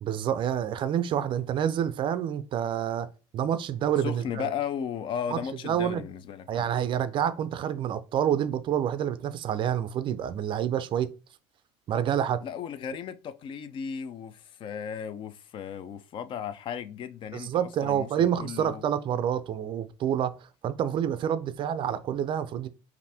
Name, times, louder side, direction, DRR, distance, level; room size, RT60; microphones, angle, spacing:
voice 1, 0.0-4.5 5.3-5.4 5.6-6.0 6.5-11.1 11.9-12.4 17.3-20.3 20.6-22.7, right 9 dB, 35° right, 0.4 m, -28 dB
voice 2, 4.0-6.7 12.4-18.8, left 8 dB, 40° left, 0.4 m, -35 dB
5.4 x 2.5 x 3.3 m
cardioid pair, 140°, 14 cm